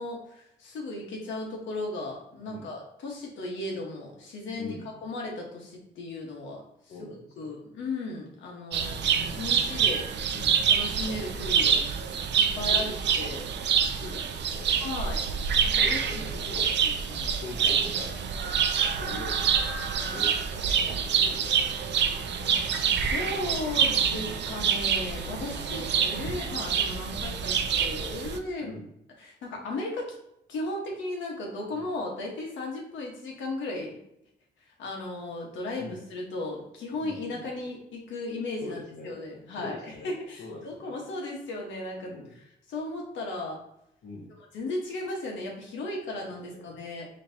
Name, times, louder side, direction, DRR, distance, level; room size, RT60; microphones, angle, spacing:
voice 1, 0.0-4.7 5.0-6.6 7.0-7.1 7.4-10.1 10.7-11.8 12.4-13.4 14.8-15.2 15.6-16.2 16.8-17.7 22.9-28.7 29.2-30.2 30.5-34.0 34.8-38.8 39.0-42.1 42.7-43.6 44.5-47.1, left 2 dB, 85° left, -1 dB, 1.3 m, -36 dB
voice 2, 4.5-5.0 6.9-7.5 10.3-10.6 12.7-12.9 14.0-14.8 15.8-16.7 17.4-18.2 19.0-19.8 20.0-22.0 26.2-26.4 28.6-28.9 31.7-31.9 35.8-36.0 37.0-37.5 38.6-39.2 39.5-40.1 40.4-41.0 42.0-42.4 44.0-44.3 46.2-46.7, left 2 dB, 60° left, -5 dB, 1.1 m, -43 dB
sound 1, 8.7-28.4, right 7 dB, 65° right, 0.5 m, -26 dB
5.3 x 3.2 x 2.8 m, 0.79 s
cardioid pair, 110°, 19 cm